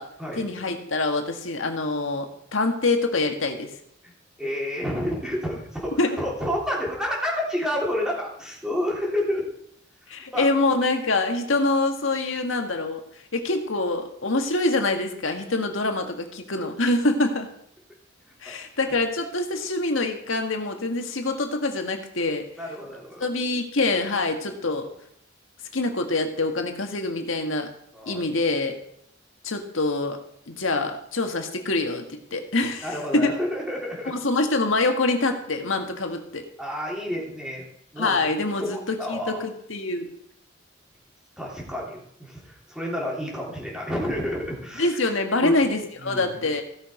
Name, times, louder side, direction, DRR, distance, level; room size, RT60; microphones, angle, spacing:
voice 1, 0.4-3.7 6.0-6.2 10.1-13.0 13.3-17.5 18.4-22.4 23.2-24.9 25.7-27.7 28.1-28.8 29.4-30.2 30.5-33.4 34.1-36.4 38.0-40.1 44.8-46.6, left 2 dB, 80° left, 4 dB, 1.7 m, -25 dB
voice 2, 4.4-9.4 10.3-10.5 18.3-18.4 22.6-23.3 27.9-28.2 32.8-34.1 36.6-37.6 37.9-38.3 38.6-39.4 41.4-45.1 45.4-45.5 46.0-46.4, equal, 5° right, -3 dB, 3.3 m, -30 dB
16.0 x 6.1 x 5.0 m, 0.70 s
head